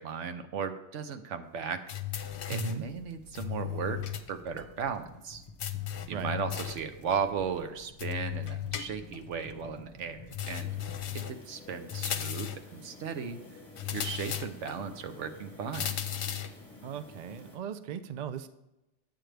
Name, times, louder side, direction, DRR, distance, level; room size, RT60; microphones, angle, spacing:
voice 1, 0.0-1.8 2.4-4.0 4.3-5.4 6.1-10.8 11.1-13.4 13.9-16.0, right 6 dB, 80° right, 8 dB, 1.1 m, -36 dB
sound 1, 1.9-2.9 3.3-4.3 4.6-4.7 5.6-6.9 8.0-9.3 10.3-11.4 11.9-12.7 13.8-14.8 15.7-16.6, left 10 dB, 70° left, 0.9 m, -36 dB
sound 2, 2.0-11.2, left 4 dB, 35° left, 1.2 m, -51 dB
voice 2, 2.5-2.8 6.1-6.4 16.8-18.5, right 6 dB, 55° right, 11 dB, 0.5 m, -37 dB
sound 3, 10.4-17.6, left 2 dB, 10° left, 2.9 m, -51 dB
9.0 x 8.7 x 3.3 m, 0.95 s
omnidirectional pair, 1.2 m